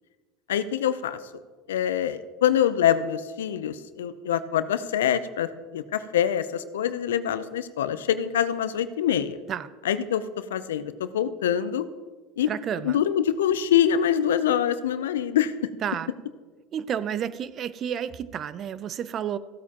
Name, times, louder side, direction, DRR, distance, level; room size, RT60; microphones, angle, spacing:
voice 1, 0.5-1.2 1.7-9.4 9.8-10.2 10.5-11.9 12.4-15.5, left 9 dB, 90° left, 13 dB, 0.5 m, -25 dB
voice 2, 12.5-13.0 15.8-16.1 16.7-19.4, right 9 dB, 45° right, 16 dB, 0.5 m, -31 dB
15.5 x 8.4 x 2.9 m, 1.4 s
hypercardioid pair, 90°, 0 cm